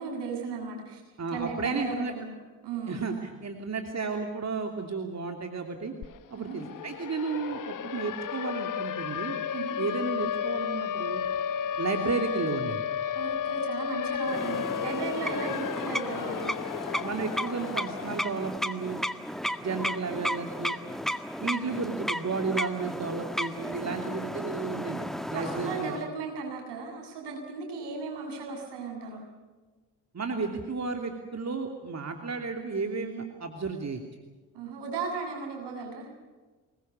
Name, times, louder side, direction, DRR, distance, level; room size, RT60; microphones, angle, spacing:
voice 1, 0.0-1.0 1.3-3.1 6.4-6.6 9.5-9.8 13.2-16.5 23.8-24.1 25.3-29.2 34.5-36.1, right 4 dB, 70° right, 2 dB, 7.7 m, -36 dB
voice 2, 1.2-2.1 2.9-5.9 6.3-9.4 9.8-11.2 11.8-12.8 17.0-19.0 19.6-20.8 21.4-25.0 25.3-25.9 30.1-34.0, right 4 dB, 35° right, 4 dB, 3.0 m, -33 dB
Siren, 6.0-6.1 6.4-18.5, left 8 dB, 45° left, 1.0 m, -33 dB
sound 1, 14.2-26.1, equal, ahead, 1.8 m, -34 dB
24.5 x 21.0 x 7.1 m, 1.3 s
hypercardioid pair, 45°, 44 cm